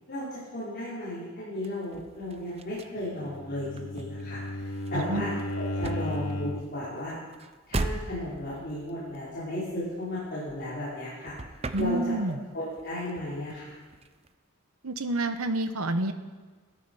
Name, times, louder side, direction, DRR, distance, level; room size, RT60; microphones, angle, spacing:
voice 1, 0.1-7.2 7.7-11.3 11.8-12.0 12.5-13.8, left 1 dB, 45° left, -10 dB, 4.9 m, -35 dB
sound 1, 1.6-11.0 11.2-12.5 12.8-14.3, right 2 dB, 30° right, 0.6 m, -39 dB
Bowed string instrument, 3.2-6.8, left 1 dB, 90° left, 0.8 m, -34 dB
voice 2, 4.9-5.2 11.7-12.4 14.8-16.1, right 2 dB, 85° right, 8 dB, 1.0 m, -28 dB
16.0 x 13.5 x 5.6 m, 1.4 s
head